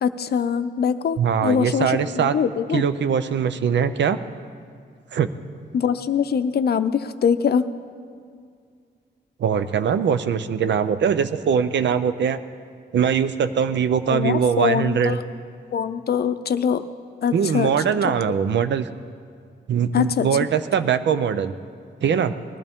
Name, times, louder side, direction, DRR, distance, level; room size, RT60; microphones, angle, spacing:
voice 1, 0.0-2.8 5.7-7.7 14.1-15.2 15.7-16.8 17.2-17.7 18.0-18.1 19.9-20.3, left 7 dB, 60° left, 11 dB, 0.6 m, -23 dB
voice 2, 1.2-2.4 2.7-4.2 5.1-5.3 9.4-12.4 12.9-15.2 17.3-18.9 19.7-21.5 22.0-22.4, right 7 dB, 80° right, 11 dB, 0.6 m, -21 dB
20.0 x 14.0 x 3.6 m, 2.2 s
wide cardioid pair, 140°, 18 cm